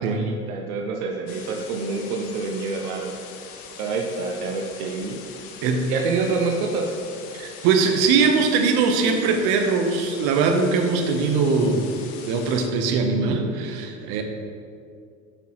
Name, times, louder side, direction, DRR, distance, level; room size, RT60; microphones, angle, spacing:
voice 1, 0.0-3.2 3.8-5.2 5.9-7.0, right 4 dB, 90° right, 2 dB, 0.8 m, -27 dB
sound 1, 1.3-12.7, left 6 dB, 80° left, 0.9 m, -42 dB
voice 2, 7.3-11.8 12.3-14.2, right 4 dB, 65° right, 5 dB, 1.0 m, -21 dB
8.0 x 6.2 x 3.0 m, 2.3 s
hypercardioid pair, 85°, 42 cm